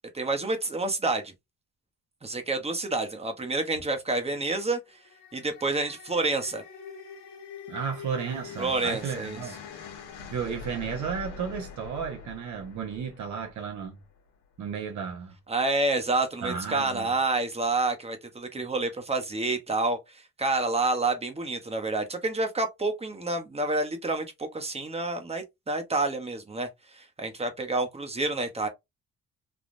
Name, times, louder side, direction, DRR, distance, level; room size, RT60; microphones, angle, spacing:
voice 1, 0.1-1.3 2.2-4.8 5.3-6.6 8.6-9.4 15.5-26.7 26.9-28.7, right 2 dB, 20° right, 0.9 m, -28 dB
sound 1, 4.9-14.2, left 6 dB, 85° left, 1.0 m, -44 dB
voice 2, 7.7-9.6 10.3-14.0 14.6-15.4 16.4-17.1, right 6 dB, 70° right, 1.0 m, -33 dB
3.5 x 2.4 x 2.5 m
cardioid pair, 90°, 30 cm